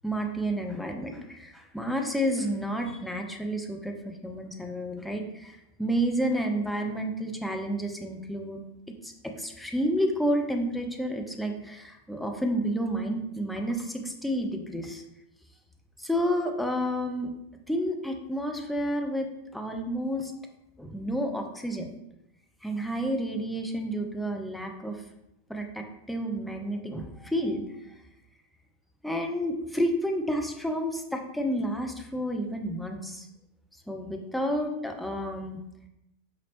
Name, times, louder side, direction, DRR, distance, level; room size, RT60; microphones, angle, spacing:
voice 1, 0.0-8.6 9.0-15.0 16.0-17.3 17.7-20.3 20.8-21.9 22.6-25.0 25.5-28.0 29.0-33.3 33.9-35.6, equal, ahead, 2 dB, 0.5 m, -30 dB
5.0 x 2.9 x 2.9 m, 0.88 s
figure-of-eight pair, 90°, 0 cm